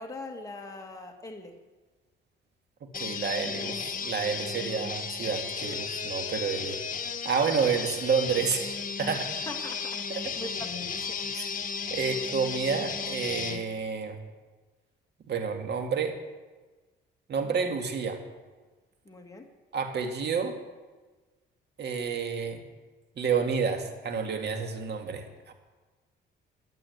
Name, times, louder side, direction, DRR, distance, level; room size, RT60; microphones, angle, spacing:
voice 1, 0.0-1.5 9.5-11.2 17.4-17.6 19.1-19.5, left 2 dB, 15° left, 2 dB, 1.9 m, -42 dB
sound 1, 2.9-13.6, left 6 dB, 45° left, 1.5 m, -34 dB
voice 2, 3.0-6.8 7.2-9.3 10.1-10.3 11.3-11.5 11.9-14.2 15.3-16.1 17.3-18.2 19.7-20.6 21.8-22.6 23.2-25.5, right 6 dB, 55° right, 5 dB, 2.0 m, -29 dB
12.5 x 9.1 x 8.0 m, 1.3 s
cardioid pair, 90°, 20 cm